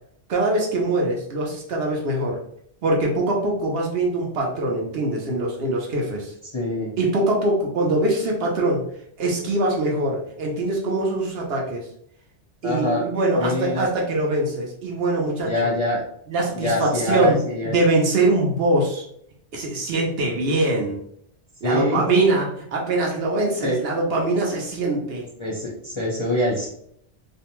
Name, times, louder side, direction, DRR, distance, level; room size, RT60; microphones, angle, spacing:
voice 1, 0.3-2.4 2.8-6.3 7.0-8.8 9.2-11.9 12.6-15.7 16.3-17.4 17.6-19.0 19.5-21.0 21.6-25.2, right 2 dB, 65° right, -1 dB, 0.8 m, -23 dB
voice 2, 6.5-6.9 12.6-13.0 13.4-13.9 15.4-16.0 16.5-17.8 21.6-22.0 23.6-23.8 25.4-26.7, left 1 dB, 35° left, -6 dB, 0.5 m, -24 dB
2.5 x 2.1 x 2.9 m, 0.69 s
omnidirectional pair, 1.2 m